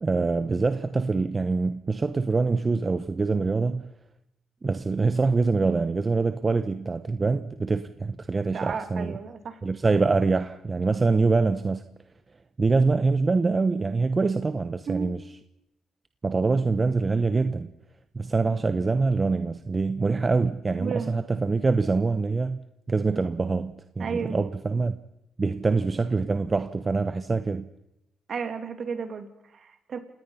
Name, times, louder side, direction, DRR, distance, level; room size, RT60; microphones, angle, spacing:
voice 1, 0.0-3.9 4.6-9.1 9.6-11.8 12.6-15.2 16.2-17.7 18.1-22.6 22.9-25.0 25.4-27.7, right 4 dB, 30° right, 0.9 m, -24 dB
voice 2, 8.5-9.6 14.9-15.1 20.8-21.2 24.0-24.4 28.3-30.0, right 6 dB, 50° right, 2.8 m, -33 dB
28.5 x 18.5 x 5.7 m
cardioid pair, 90°, 0 cm